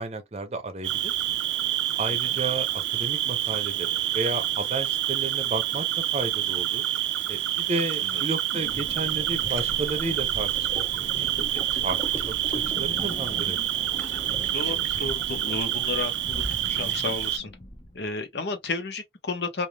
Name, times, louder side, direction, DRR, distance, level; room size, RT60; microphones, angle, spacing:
voice 1, 0.0-1.4 1.9-5.9 6.1-6.8 7.3-13.7, right 2 dB, 35° right, 0.6 m, -33 dB
Cricket, 0.8-17.4, right 13 dB, 90° right, 0.4 m, -27 dB
sound 1, 8.5-18.0, left 1 dB, 25° left, 0.7 m, -39 dB
voice 2, 14.5-17.5 17.9-19.7, left 3 dB, 75° left, 0.9 m, -32 dB
3.4 x 2.5 x 2.2 m
head